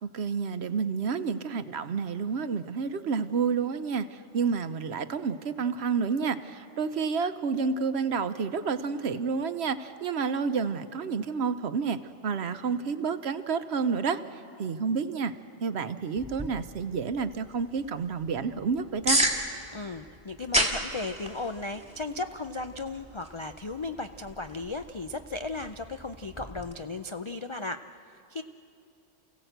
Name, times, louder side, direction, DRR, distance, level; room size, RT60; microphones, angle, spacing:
voice 1, 0.0-15.3 15.6-19.2, right 5 dB, 60° right, 10 dB, 1.0 m, -30 dB
sound 1, 16.2-26.7, right 1 dB, 5° right, 2.1 m, -34 dB
voice 2, 19.7-28.4, left 3 dB, 50° left, 8 dB, 0.3 m, -36 dB
29.0 x 16.0 x 8.0 m, 2.5 s
omnidirectional pair, 1.3 m